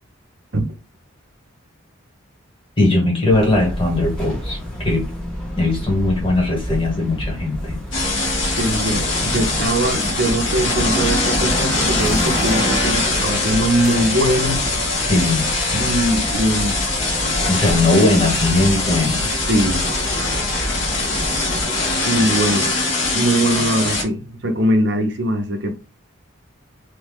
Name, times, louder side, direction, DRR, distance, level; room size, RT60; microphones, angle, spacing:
voice 1, 2.8-4.6 4.8-5.1 5.6-7.8 15.1-15.5 16.2-16.3 17.4-19.3 19.7-19.8, left 2 dB, 25° left, 1.3 m, -19 dB
sound 1, 3.3-21.6, equal, 5° left, 1.0 m, -29 dB
sound 2, 7.9-24.0, left 2 dB, 65° left, 1.2 m, -22 dB
voice 2, 8.6-14.6 15.7-16.8 19.2-19.8 22.0-22.7 23.1-25.8, right 1 dB, 55° right, 0.7 m, -21 dB
3.2 x 2.3 x 3.5 m
head